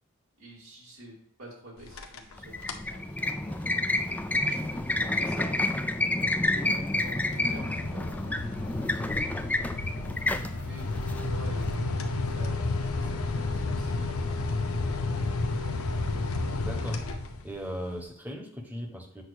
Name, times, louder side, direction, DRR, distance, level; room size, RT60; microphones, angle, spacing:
voice 1, 0.4-3.7 4.4-5.6 6.3-9.3 10.0-15.4, equal, 90° right, -4 dB, 2.7 m, -48 dB
sound 1, 1.8-2.3 2.6-3.0 3.4-17.7, left 3 dB, 75° left, 0.7 m, -32 dB
sound 2, 2.4-11.7, left 2 dB, 5° left, 0.3 m, -29 dB
voice 2, 16.5-17.0 17.4-19.2, equal, 10° right, 3 dB, 1.0 m, -37 dB
8.1 x 2.8 x 6.1 m, 0.70 s
head